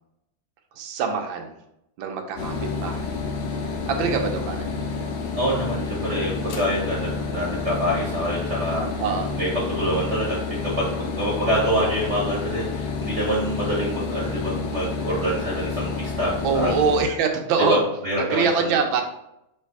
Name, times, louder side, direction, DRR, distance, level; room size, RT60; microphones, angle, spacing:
voice 1, 0.8-1.5 2.0-3.2 3.9-4.7 9.0-9.4 16.4-17.8 18.2-19.0, right 5 dB, 80° right, 4 dB, 1.4 m, -24 dB
sound 1, 2.4-17.0, left 4 dB, 70° left, 1.0 m, -29 dB
voice 2, 5.4-8.9 9.4-16.8 17.7-18.8, equal, 45° right, -6 dB, 1.2 m, -26 dB
3.3 x 3.2 x 4.5 m, 0.82 s
omnidirectional pair, 2.1 m